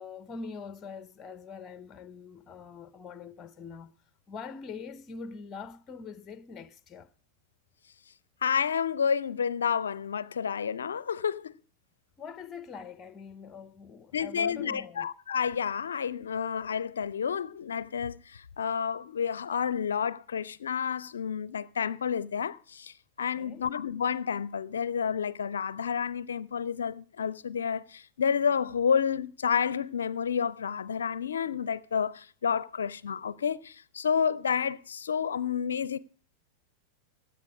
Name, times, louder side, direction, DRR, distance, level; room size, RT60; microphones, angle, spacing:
voice 1, 0.0-3.9 4.3-7.1 12.2-15.1 23.4-23.7, left 5 dB, 25° left, 0.7 m, -43 dB
voice 2, 8.4-11.5 14.1-36.0, left 7 dB, 70° left, 0.5 m, -30 dB
16.0 x 10.0 x 4.8 m
figure-of-eight pair, 90°, 0 cm